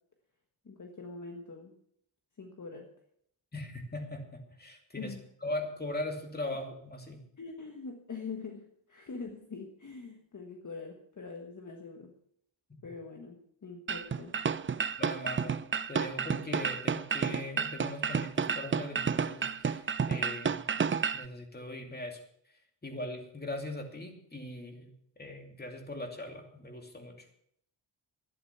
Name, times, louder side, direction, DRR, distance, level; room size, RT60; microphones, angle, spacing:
voice 1, 0.6-1.7 2.4-2.9 5.0-5.2 7.4-12.1 12.8-14.3, left 4 dB, 40° left, 3 dB, 1.5 m, -43 dB
voice 2, 3.5-5.1 5.4-7.2 15.0-15.6 15.9-20.7 21.1-22.2 22.8-24.9 25.2-27.2, left 1 dB, 20° left, 3 dB, 2.6 m, -40 dB
sound 1, 13.9-21.2, right 6 dB, 30° right, 0.4 m, -31 dB
12.0 x 11.0 x 5.8 m, 0.69 s
wide cardioid pair, 110°, 46 cm